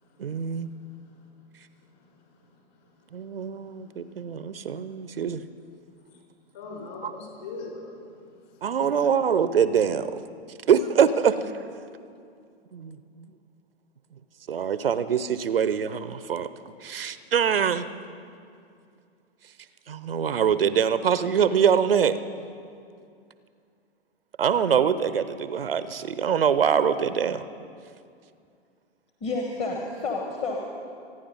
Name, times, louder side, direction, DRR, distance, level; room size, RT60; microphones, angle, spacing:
voice 1, 0.2-0.7 3.1-5.4 7.0-7.1 8.6-10.2 10.7-11.4 12.7-13.3 14.5-16.5 16.8-17.9 19.9-22.2 24.4-27.4, right 7 dB, 60° right, 14 dB, 0.7 m, -24 dB
voice 2, 3.4-3.9 6.5-7.8 8.2-8.3 9.0-9.1, left 3 dB, 45° left, 0 dB, 5.1 m, -40 dB
voice 3, 29.2-30.6, left 3 dB, 20° left, 0 dB, 1.3 m, -30 dB
26.0 x 9.9 x 5.3 m, 2.4 s
figure-of-eight pair, 110°, 32 cm